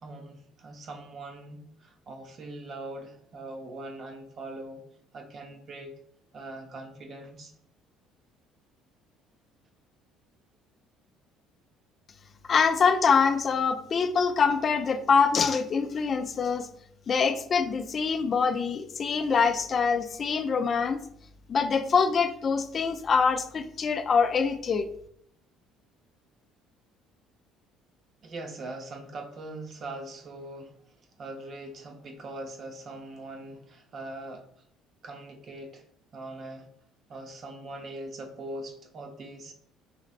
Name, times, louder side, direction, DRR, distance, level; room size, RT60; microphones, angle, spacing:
voice 1, 0.0-4.8 5.1-5.9 6.3-7.5 28.2-34.5 35.0-35.8 36.1-36.7 37.1-39.5, right 2 dB, 50° right, 4 dB, 0.7 m, -41 dB
voice 2, 12.5-16.7 17.1-21.0 21.5-24.9, left 5 dB, 45° left, 9 dB, 0.3 m, -24 dB
4.1 x 3.0 x 2.5 m, 0.66 s
supercardioid pair, 80°, 0 cm